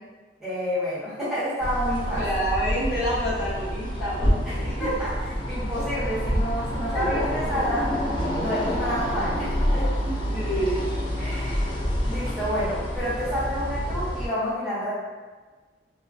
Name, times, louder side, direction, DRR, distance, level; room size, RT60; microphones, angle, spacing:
voice 1, 0.4-2.2 4.4-4.5 4.8-5.1 5.4-7.9 8.4-9.9 11.2-11.7 12.0-14.9, equal, 5° right, -11 dB, 0.7 m, -29 dB
sound 1, 1.6-14.3, equal, 25° left, 0.4 m, -27 dB
voice 2, 2.2-4.9 6.9-7.6 10.0-10.9, right 1 dB, 65° left, -9 dB, 1.0 m, -29 dB
2.9 x 2.2 x 2.5 m, 1.3 s
head